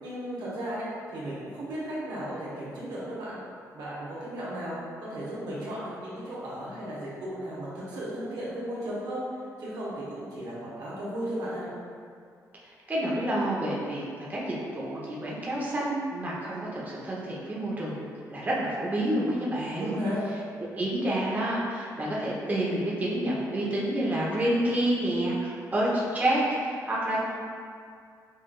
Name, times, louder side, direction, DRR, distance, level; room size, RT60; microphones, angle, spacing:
voice 1, 0.0-0.9 1.1-3.4 3.7-9.2 9.6-11.7 19.8-20.2, equal, 85° right, -8 dB, 1.1 m, -35 dB
voice 2, 12.6-14.0 14.3-20.0 20.8-27.3, right 1 dB, 25° right, -6 dB, 0.8 m, -28 dB
5.5 x 2.5 x 2.3 m, 2.2 s
cardioid pair, 100°, 7 cm